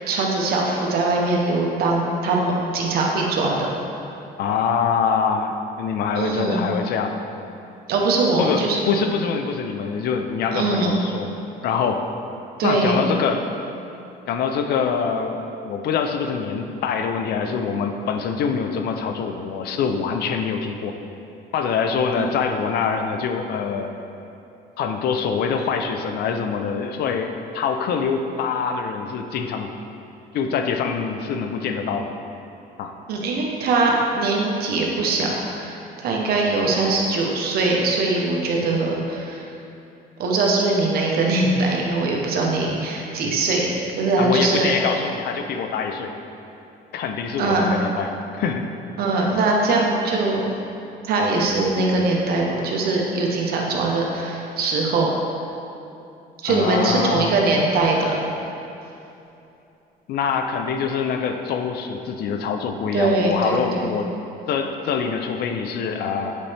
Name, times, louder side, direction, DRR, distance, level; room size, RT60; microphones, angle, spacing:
voice 1, 0.1-3.7 6.1-6.6 7.9-8.8 10.5-10.9 12.6-13.0 22.2-22.3 33.1-35.3 35.6-39.4 40.2-43.7 44.0-44.7 47.4-47.7 49.0-50.5 51.0-55.1 56.4-58.1 62.9-63.9, right 3 dB, 65° right, -1 dB, 1.1 m, -21 dB
voice 2, 4.4-7.2 8.4-11.3 11.6-12.1 12.6-13.5 14.3-20.9 21.5-23.9 24.8-29.7 30.3-32.1 32.8-32.9 44.2-46.1 46.9-48.7 56.5-57.3 60.1-64.1 64.5-66.4, left 6 dB, 70° left, 5 dB, 0.6 m, -24 dB
8.2 x 4.2 x 3.4 m, 2.8 s
cardioid pair, 110°, 17 cm